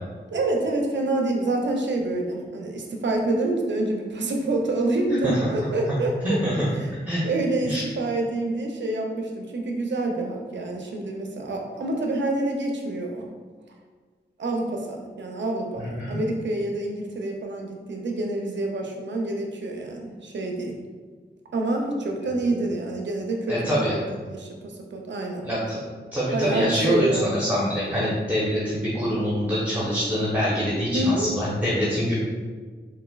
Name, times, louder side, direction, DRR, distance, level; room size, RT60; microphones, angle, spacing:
voice 1, 0.3-6.4 6.8-6.9 7.2-13.3 14.4-20.8 21.5-24.0 24.3-25.5 26.3-27.4 30.9-31.3, right 2 dB, 80° right, 1 dB, 0.5 m, -27 dB
voice 2, 6.2-6.6 7.1-7.2 7.6-7.8 15.8-16.2 23.5-24.0 25.4-25.8 26.1-32.1, equal, 10° right, -7 dB, 0.8 m, -25 dB
4.0 x 2.6 x 2.3 m, 1.5 s
wide cardioid pair, 70°, 19 cm